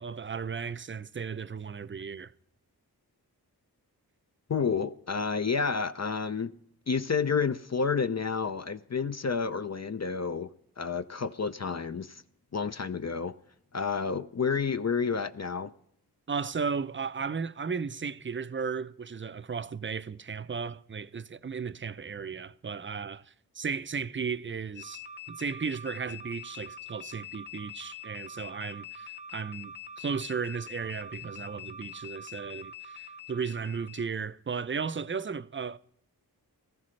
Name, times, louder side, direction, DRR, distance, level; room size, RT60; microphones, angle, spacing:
voice 1, 0.0-2.3 16.3-25.0 25.3-35.8, right 5 dB, 30° right, 0.5 m, -35 dB
voice 2, 4.5-6.5 6.9-10.5 10.8-12.2 12.5-13.3 13.7-15.7, left 5 dB, 45° left, 0.6 m, -30 dB
sound 1, 24.7-34.1, left 4 dB, 25° left, 1.3 m, -44 dB
18.5 x 14.0 x 3.2 m
cardioid pair, 40°, 38 cm